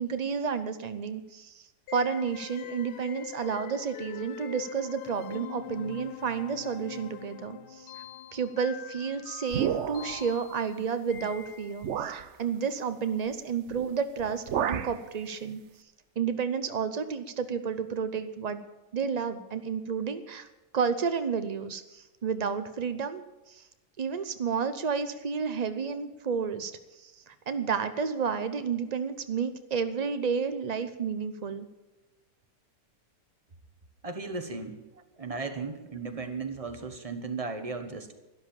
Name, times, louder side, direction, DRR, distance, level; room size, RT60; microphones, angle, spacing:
voice 1, 0.0-7.9 8.3-15.6 16.2-18.6 18.9-20.5 20.7-23.6 24.0-31.7, right 6 dB, 90° right, 10 dB, 0.3 m, -31 dB
sound 1, 1.9-12.0, left 10 dB, 75° left, 1.2 m, -43 dB
sound 2, 9.5-10.3 11.2-11.3 11.8-12.3 13.7-13.9 14.2-15.0, right 9 dB, 60° right, 0.8 m, -31 dB
voice 2, 34.0-34.8 35.2-38.1, right 4 dB, 25° right, 6 dB, 1.1 m, -36 dB
12.5 x 12.0 x 7.1 m, 1.1 s
omnidirectional pair, 1.8 m